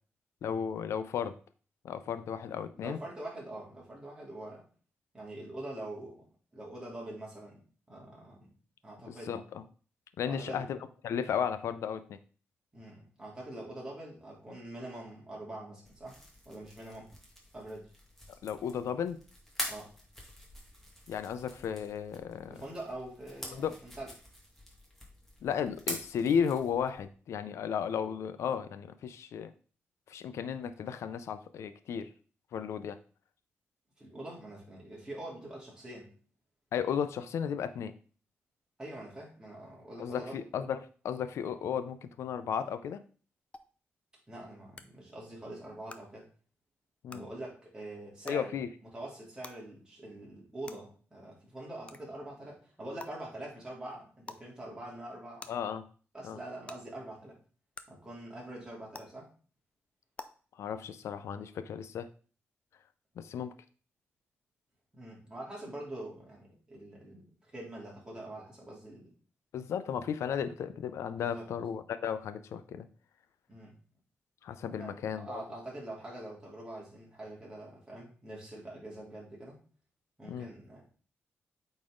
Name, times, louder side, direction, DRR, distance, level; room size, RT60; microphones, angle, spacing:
voice 1, 0.4-1.3 1.8-3.0 9.1-9.6 10.2-10.8 11.0-12.2 18.4-19.2 21.1-22.5 23.5-23.7 25.4-29.5 30.1-32.1 32.5-33.0 36.7-37.9 40.0-40.8 41.0-43.0 47.0-47.3 48.3-48.7 55.5-55.8 56.2-56.4 60.6-62.1 63.2-63.5 69.5-72.8 74.4-75.4 80.3-80.5, left 7 dB, 85° left, 11 dB, 0.6 m, -34 dB
voice 2, 2.8-4.6 5.1-8.5 8.8-9.4 10.2-10.7 12.7-16.2 16.4-17.1 17.5-17.9 19.6-19.9 22.5-24.1 34.0-36.1 38.8-40.4 44.3-46.3 47.1-48.6 48.9-55.5 56.1-57.4 57.9-59.3 64.9-69.1 71.2-71.5 73.5-73.8 74.8-79.6 80.2-80.9, right 1 dB, 15° right, -3 dB, 3.2 m, -44 dB
sound 1, 15.8-27.0, equal, 5° left, 2.1 m, -45 dB
sound 2, 43.5-43.6 44.8-44.9 45.9-46.0 47.1-47.2 48.3-48.4 49.4-49.5 50.7-50.8 51.9-52.0 53.0-53.1 54.2-54.4 55.4-55.5 56.7-56.8 57.7-57.8 58.9-59.0 60.2-60.3, left 3 dB, 25° left, 0.6 m, -44 dB
8.6 x 4.1 x 3.8 m, 0.40 s
cardioid pair, 115°, 5 cm